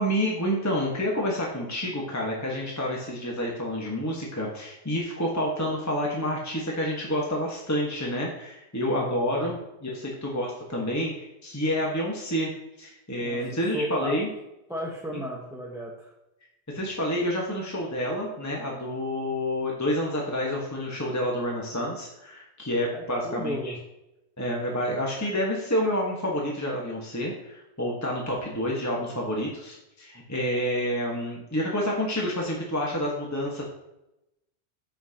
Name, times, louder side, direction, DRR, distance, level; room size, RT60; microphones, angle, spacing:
voice 1, 0.0-9.6 9.8-12.5 12.8-14.3 15.1-15.2 16.7-23.7 24.4-33.6, equal, 15° left, -2 dB, 1.4 m, -29 dB
voice 2, 8.8-9.6 13.2-14.3 14.7-16.1 22.9-23.8, equal, 5° right, -2 dB, 1.0 m, -35 dB
13.5 x 5.9 x 2.9 m, 0.90 s
omnidirectional pair, 1.1 m